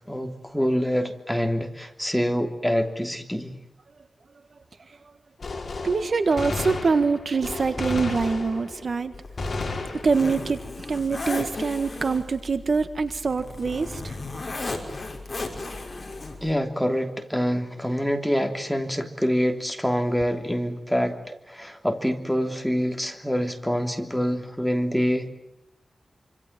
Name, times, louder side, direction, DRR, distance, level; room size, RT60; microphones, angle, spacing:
voice 1, 0.1-3.6 16.4-21.2 21.5-25.3, equal, ahead, 4 dB, 3.1 m, -26 dB
Gunshot gunfire, 5.4-8.9 9.4-10.5, left 3 dB, 50° left, 6.1 m, -32 dB
voice 2, 5.8-9.1 10.0-14.2, right 4 dB, 55° right, 9 dB, 1.6 m, -24 dB
Zipper (clothing), 9.1-16.5, left 2 dB, 35° left, 5.7 m, -35 dB
27.0 x 26.5 x 7.5 m, 0.86 s
wide cardioid pair, 125°, 0 cm